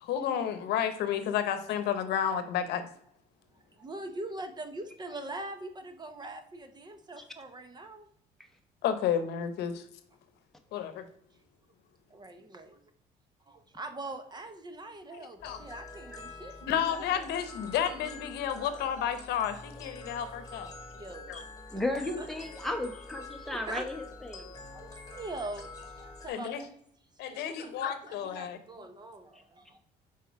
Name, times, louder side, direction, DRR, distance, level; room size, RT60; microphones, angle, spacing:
voice 1, 0.0-2.9 8.8-9.8 10.7-11.1 15.4-15.6 16.6-20.7 21.3-21.4 26.3-26.6 27.2-28.6, left 9 dB, 80° left, 10 dB, 0.9 m, -31 dB
voice 2, 3.5-8.1 12.1-12.8 13.5-17.2 20.9-21.3 22.2-22.3 23.5-23.9 24.7-26.7 27.3-29.8, right 2 dB, 25° right, 8 dB, 0.8 m, -43 dB
sound 1, 15.4-26.3, left 3 dB, 20° left, 1.5 m, -46 dB
voice 3, 21.7-24.5, left 1 dB, ahead, 4 dB, 1.0 m, -34 dB
6.1 x 4.5 x 4.6 m, 0.70 s
cardioid pair, 110°, 17 cm